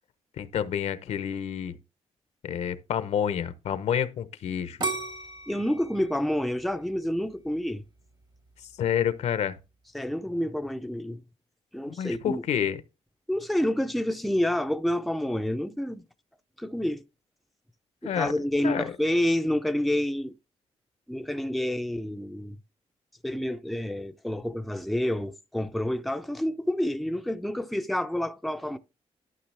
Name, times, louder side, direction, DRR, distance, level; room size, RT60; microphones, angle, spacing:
voice 1, 0.4-1.8 2.4-4.8 8.6-9.6 11.9-12.8 18.0-18.3 18.6-18.9, left 9 dB, 75° left, 0.8 m, -29 dB
sound 1, 4.8-7.7 8.2-8.7, right 3 dB, 40° right, 1.1 m, -35 dB
voice 2, 5.5-7.8 9.9-11.2 11.7-12.4 13.3-16.0 16.6-17.0 18.0-20.4 21.1-22.6 23.2-28.8, left 1 dB, ahead, 0.5 m, -28 dB
12.0 x 6.1 x 3.3 m
cardioid pair, 130°, 11 cm